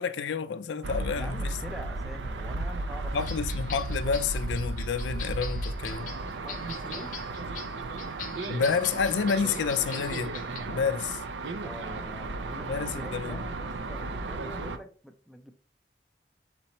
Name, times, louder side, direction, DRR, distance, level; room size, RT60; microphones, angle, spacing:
voice 1, 0.0-1.6 3.1-6.1 8.5-10.4 10.7-11.2 12.7-13.5, left 6 dB, 90° left, 0.4 m, -29 dB
sound 1, 0.8-14.8, right 2 dB, 90° right, 0.5 m, -34 dB
voice 2, 1.1-3.2 6.4-7.1 11.6-15.5, equal, ahead, 0.4 m, -44 dB
sound 2, 3.2-10.6, left 7 dB, 45° left, 0.7 m, -43 dB
4.1 x 2.9 x 4.2 m
head